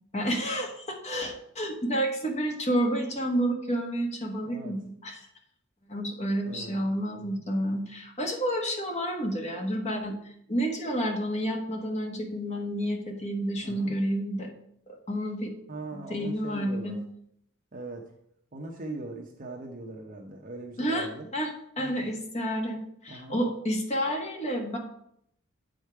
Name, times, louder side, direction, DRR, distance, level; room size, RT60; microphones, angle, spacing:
voice 1, 0.1-5.3 5.9-14.5 14.9-15.5 15.9-17.0 20.8-24.8, equal, 30° left, 2 dB, 1.4 m, -30 dB
voice 2, 6.4-6.8 7.2-7.4 13.6-13.9 15.7-17.0 17.7-18.1 18.5-21.3 21.8-21.9 23.1-23.4, right 2 dB, 40° right, 1 dB, 0.8 m, -40 dB
8.5 x 5.1 x 4.6 m, 0.71 s
head